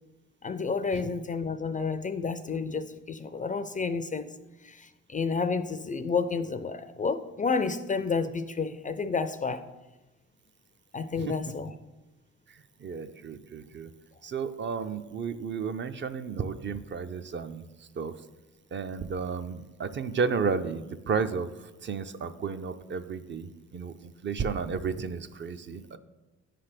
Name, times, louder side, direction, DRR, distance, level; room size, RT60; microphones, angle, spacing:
voice 1, 0.4-4.3 4.6-9.6 10.9-11.7, left 4 dB, 25° left, 11 dB, 0.4 m, -30 dB
voice 2, 12.5-13.9 14.2-18.1 18.7-26.0, right 5 dB, 40° right, 10 dB, 0.5 m, -33 dB
9.6 x 3.3 x 5.8 m, 1.1 s
cardioid pair, 90°, 30 cm